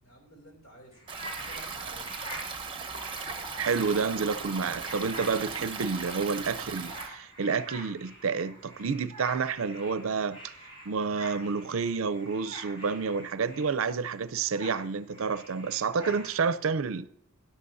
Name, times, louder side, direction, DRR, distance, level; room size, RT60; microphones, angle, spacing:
voice 1, 0.0-2.1, right 1 dB, 85° left, 2.8 m, -52 dB
sound 1, 0.9-14.0 14.4-16.5, right 1 dB, 25° left, 3.7 m, -46 dB
Stream, 1.1-7.1, right 4 dB, 25° right, 0.9 m, -38 dB
voice 2, 3.6-10.5 10.9-17.1, right 5 dB, 70° right, 0.5 m, -29 dB
12.5 x 11.5 x 2.6 m
head